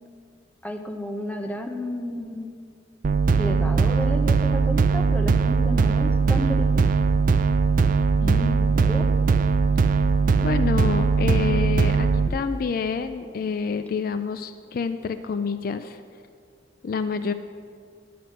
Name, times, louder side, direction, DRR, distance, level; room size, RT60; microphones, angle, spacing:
voice 1, 0.6-2.5 3.4-6.9 8.7-9.1, left 1 dB, 10° left, 4 dB, 0.7 m, -32 dB
sound 1, 3.0-12.3, right 4 dB, 50° right, 0.3 m, -20 dB
voice 2, 8.2-8.8 10.4-16.0 16.8-17.3, left 5 dB, 55° left, 10 dB, 0.3 m, -28 dB
10.5 x 5.9 x 6.5 m, 2.1 s
head